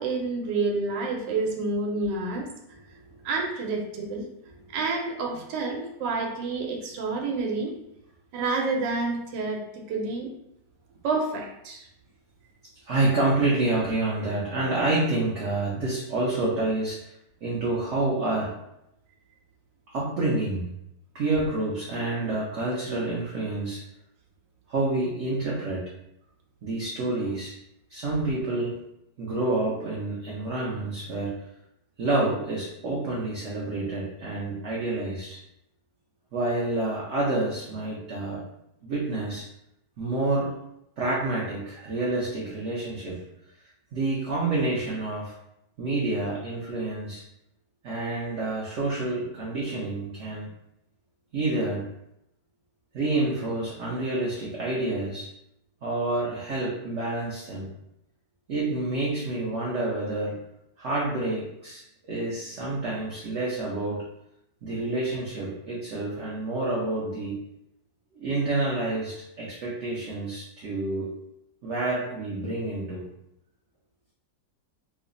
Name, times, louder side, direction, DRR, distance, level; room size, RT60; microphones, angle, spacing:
voice 1, 0.0-2.5 3.2-4.2 4.7-7.7 8.3-10.3 11.0-11.9, right 3 dB, 80° right, 0 dB, 1.3 m, -29 dB
voice 2, 12.9-17.1 17.4-18.6 19.9-20.7 21.1-23.8 24.7-25.9 26.6-27.6 27.9-28.8 29.2-31.4 32.0-35.4 36.3-38.4 38.8-39.5 40.0-40.5 41.0-43.2 43.9-45.3 45.8-47.2 47.8-50.5 51.3-51.9 52.9-55.3 55.8-57.7 58.5-60.4 60.8-64.1 64.6-67.3 68.1-71.1 71.6-73.1, right 2 dB, 65° right, -4 dB, 0.7 m, -28 dB
3.1 x 2.1 x 3.7 m, 0.80 s
omnidirectional pair, 2.0 m